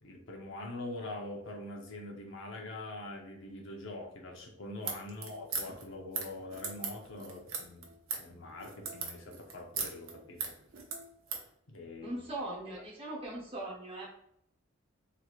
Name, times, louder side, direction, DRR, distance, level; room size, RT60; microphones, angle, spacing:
voice 1, 0.0-7.9 8.2-10.6 11.7-12.1, left 2 dB, 70° left, 1 dB, 0.7 m, -44 dB
sound 1, 4.8-11.5, right 5 dB, 80° right, 0.6 m, -39 dB
voice 2, 12.0-14.1, right 1 dB, 25° right, -3 dB, 0.9 m, -40 dB
3.0 x 3.0 x 2.4 m, 0.71 s
head